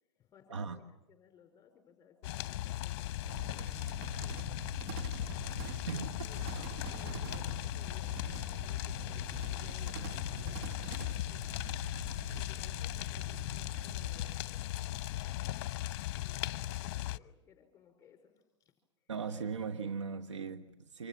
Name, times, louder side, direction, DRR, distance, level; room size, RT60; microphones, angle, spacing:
voice 1, 0.2-11.6 11.8-15.6 16.1-19.1, left 8 dB, 20° left, 5 dB, 5.0 m, -62 dB
sound 1, 2.2-17.2, left 15 dB, 50° left, 0.9 m, -38 dB
sound 2, 3.2-14.3, right 6 dB, 60° right, 1.9 m, -46 dB
sound 3, 6.4-8.3, right 6 dB, 40° right, 1.7 m, -62 dB
voice 2, 19.1-21.1, right 5 dB, 90° right, 6 dB, 1.4 m, -38 dB
28.0 x 26.5 x 7.4 m, 0.93 s
hypercardioid pair, 115°, 15 cm